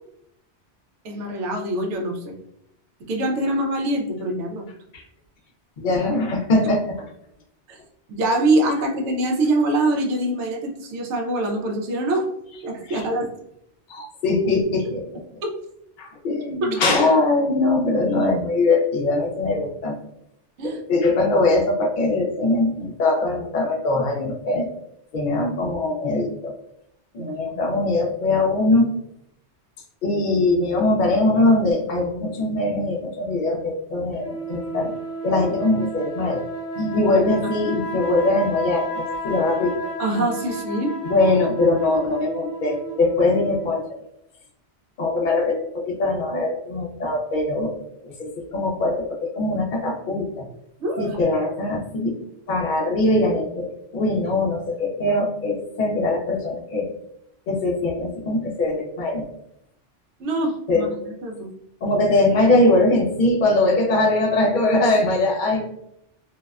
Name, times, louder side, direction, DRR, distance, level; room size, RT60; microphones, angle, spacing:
voice 1, 1.0-2.3 3.1-4.7 7.7-7.8 8.1-12.3 12.6-13.3 15.4-15.5 16.6-16.7 20.6-20.8 27.2-27.7 40.0-40.9 50.8-51.2 60.2-61.5, right 1 dB, 80° right, 1 dB, 0.9 m, -24 dB
voice 2, 5.8-6.8 12.9-13.0 13.9-15.2 16.0-20.0 20.9-24.7 25.1-26.5 27.1-28.9 30.0-34.9 35.2-36.4 36.8-39.8 41.0-43.8 45.0-47.7 48.0-50.4 51.0-52.2 52.5-53.7 53.9-56.9 57.5-59.2 60.7-60.9 61.8-65.6, left 2 dB, 55° left, 0 dB, 0.6 m, -21 dB
sound 1, 34.2-43.9, right 1 dB, 75° left, 0.9 m, -32 dB
2.6 x 2.1 x 2.3 m, 0.76 s
omnidirectional pair, 1.2 m